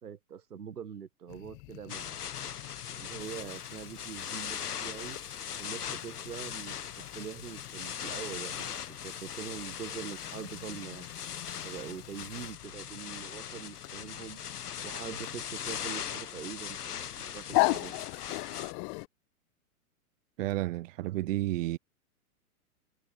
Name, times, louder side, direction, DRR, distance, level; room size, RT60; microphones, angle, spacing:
voice 1, 0.0-2.2 2.9-5.2 5.6-11.1 11.6-14.4 14.8-17.9, right 7 dB, 85° right, 1.5 m, -43 dB
sound 1, 1.3-19.1, left 31 dB, 35° left, 1.0 m, -39 dB
sound 2, 1.9-18.7, left 8 dB, 85° left, 1.0 m, -40 dB
sound 3, 3.1-12.7, left 16 dB, 55° left, 6.7 m, -63 dB
voice 2, 20.4-21.8, right 16 dB, 60° right, 0.5 m, -31 dB
hypercardioid pair, 110°, 45 cm